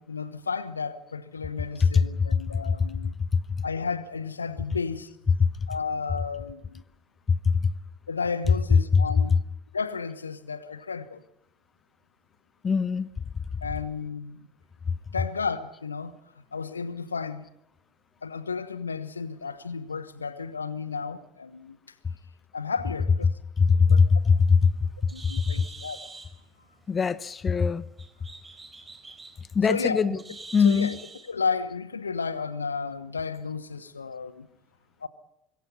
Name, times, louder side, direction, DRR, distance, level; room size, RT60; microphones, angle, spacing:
voice 1, 0.0-3.1 3.6-5.1 5.7-6.8 8.1-9.3 9.7-11.2 13.6-14.5 15.1-16.2 16.5-17.5 18.2-21.8 22.5-23.3 23.7-24.0 25.1-26.1 29.7-30.2 30.6-31.0 31.2-34.5 35.0-35.1, left 5 dB, 80° left, 1.2 m, -33 dB
voice 2, 1.8-2.3 2.7-2.8 3.3-3.4 5.4-5.5 7.3-7.7 8.9-9.0 12.6-13.1 23.6-24.9 25.2-25.6 26.9-27.8 29.5-30.2 30.5-30.9, left 5 dB, 25° left, 0.9 m, -21 dB
Bird, 24.0-31.3, right 3 dB, 15° right, 3.9 m, -46 dB
25.5 x 22.0 x 5.7 m
figure-of-eight pair, 70°, 0 cm